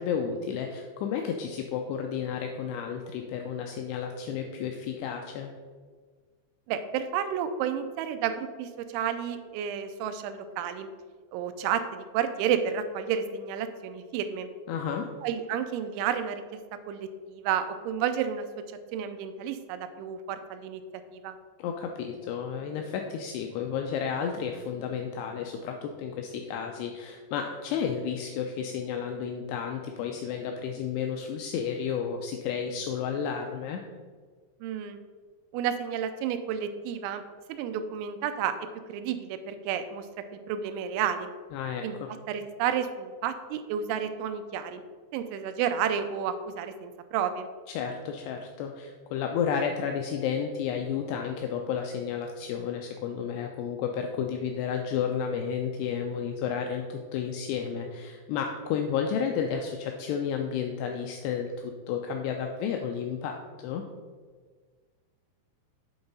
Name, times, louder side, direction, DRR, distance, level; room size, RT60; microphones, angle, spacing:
voice 1, 0.0-5.5 14.7-15.1 21.6-33.8 41.5-42.1 47.7-63.8, left 7 dB, 90° left, 3 dB, 2.3 m, -32 dB
voice 2, 6.7-10.9 11.3-14.5 15.2-16.4 16.9-18.5 18.9-20.8 21.1-21.4 34.6-35.0 35.5-37.2 37.5-38.6 38.9-40.1 40.5-41.3 41.8-42.0 42.3-44.8 45.1-47.5, right 8 dB, 90° right, 9 dB, 3.0 m, -31 dB
7.9 x 3.9 x 5.3 m, 1.5 s
omnidirectional pair, 5.3 m